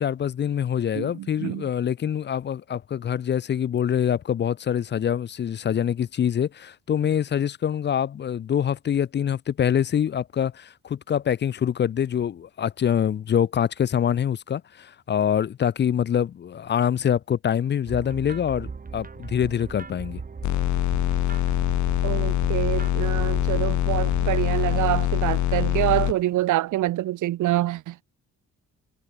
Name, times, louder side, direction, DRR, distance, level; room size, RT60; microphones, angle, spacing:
voice 1, 0.0-20.2, left 9 dB, 35° left, 0.4 m, -25 dB
voice 2, 1.0-1.6 22.0-28.0, right 15 dB, 85° right, 0.7 m, -26 dB
sound 1, 17.9-24.3, right 5 dB, 30° right, 2.6 m, -38 dB
sound 2, 20.4-26.1, left 13 dB, 75° left, 0.7 m, -24 dB
cardioid pair, 130°, 30 cm